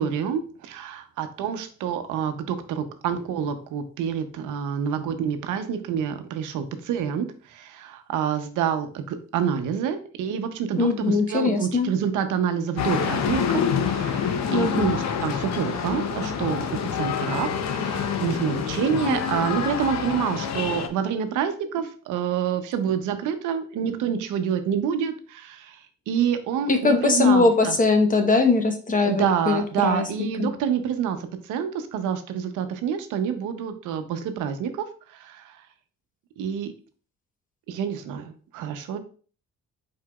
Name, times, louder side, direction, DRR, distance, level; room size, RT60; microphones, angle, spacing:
voice 1, 0.0-27.8 29.0-35.6 36.4-36.7 37.7-39.0, right 8 dB, 90° right, 8 dB, 0.7 m, -27 dB
voice 2, 10.7-11.9 14.5-15.0 26.7-30.1 30.4-30.5, left 3 dB, 25° left, 5 dB, 0.9 m, -21 dB
sound 1, 12.8-20.9, left 7 dB, 60° left, 0.7 m, -27 dB
4.7 x 4.6 x 2.3 m, 0.41 s
cardioid pair, 90°, 30 cm